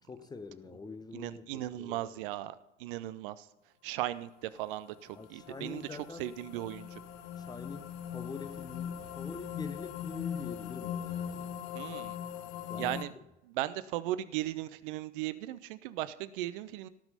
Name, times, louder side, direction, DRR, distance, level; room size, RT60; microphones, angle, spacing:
voice 1, 0.1-2.0 5.1-6.3 7.4-11.5 12.7-13.2, left 4 dB, 10° left, 0.8 m, -45 dB
voice 2, 1.1-2.5 2.8-3.5 3.8-7.0 11.7-12.2 12.8-13.1 13.4-16.9, right 14 dB, 50° right, 0.8 m, -37 dB
sound 1, 4.6-13.0, left 9 dB, 45° left, 1.1 m, -41 dB
18.0 x 6.1 x 5.6 m
figure-of-eight pair, 80°, 35 cm